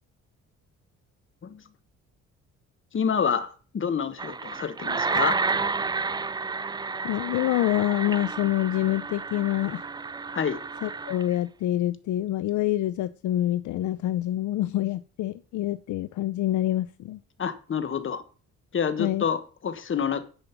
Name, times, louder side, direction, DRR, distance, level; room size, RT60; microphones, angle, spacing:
voice 1, 2.9-5.4 10.3-10.6 17.4-18.2 18.7-20.2, left 7 dB, 40° left, 11 dB, 1.4 m, -28 dB
sound 1, 4.2-11.3, right 4 dB, 15° right, 0.3 m, -30 dB
voice 2, 7.0-9.8 10.8-17.2 19.0-19.2, left 14 dB, 75° left, 15 dB, 0.5 m, -26 dB
10.5 x 5.2 x 5.9 m, 0.38 s
cardioid pair, 90°, 30 cm